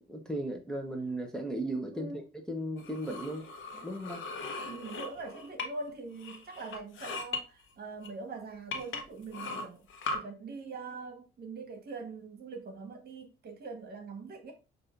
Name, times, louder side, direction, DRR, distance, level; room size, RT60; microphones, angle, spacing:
voice 1, 0.1-2.2 2.5-3.4 3.8-4.2 9.5-9.6, right 1 dB, 5° left, 1.0 m, -36 dB
sound 1, 2.8-5.9 6.2-7.4 8.0-8.1 8.7-10.2, left 3 dB, 80° left, 1.0 m, -39 dB
voice 2, 4.6-9.9 10.1-14.5, right 3 dB, 55° right, 1.3 m, -43 dB
6.2 x 2.7 x 2.5 m
cardioid pair, 90°, 20 cm